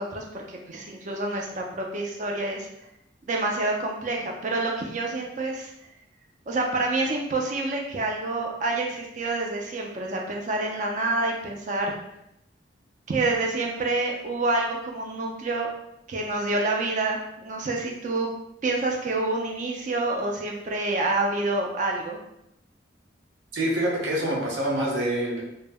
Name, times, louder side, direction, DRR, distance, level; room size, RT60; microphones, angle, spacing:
voice 1, 0.0-2.7 3.3-5.7 6.5-12.0 13.1-15.7 16.1-18.3 18.6-22.2, right 2 dB, 40° right, 0 dB, 0.4 m, -27 dB
voice 2, 23.5-25.4, right 1 dB, 75° right, -2 dB, 0.7 m, -26 dB
2.1 x 2.0 x 3.4 m, 0.80 s
head